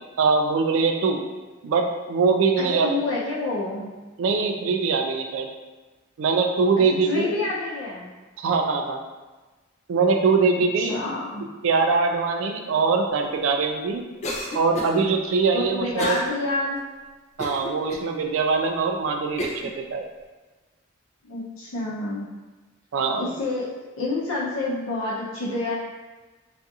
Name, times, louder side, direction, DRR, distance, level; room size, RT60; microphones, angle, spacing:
voice 1, 0.2-1.2 1.6-3.0 4.2-5.5 6.2-7.4 8.4-9.0 9.9-10.9 11.6-14.0 14.5-16.2 17.4-20.1 22.9-23.2, right 4 dB, 75° right, 4 dB, 0.3 m, -22 dB
voice 2, 2.5-3.9 7.1-8.1 10.8-11.4 15.5-16.8 21.2-22.3 23.2-25.7, left 2 dB, 80° left, -6 dB, 0.6 m, -28 dB
Cough, 14.2-15.0 16.0-16.3 16.8-16.9 17.4-18.1 18.7-18.8 19.4-19.7, left 1 dB, 35° left, 0.3 m, -31 dB
2.5 x 2.4 x 2.6 m, 1.2 s
head